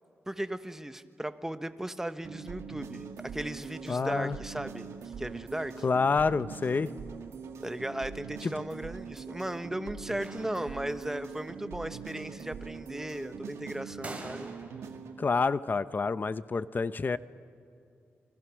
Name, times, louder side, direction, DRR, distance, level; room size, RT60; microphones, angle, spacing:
voice 1, 0.3-5.8 7.6-14.5, right 1 dB, 10° right, 10 dB, 1.2 m, -36 dB
sound 1, 2.2-15.2, right 6 dB, 85° right, 2.2 m, -43 dB
voice 2, 3.9-4.4 5.8-6.9 8.4-8.5 15.2-17.2, left 4 dB, 40° left, 15 dB, 0.7 m, -28 dB
sound 2, 10.2-11.2 14.0-15.0, right 2 dB, 25° right, 4.7 m, -45 dB
29.5 x 22.5 x 6.2 m, 2.6 s
cardioid pair, 75°, 5 cm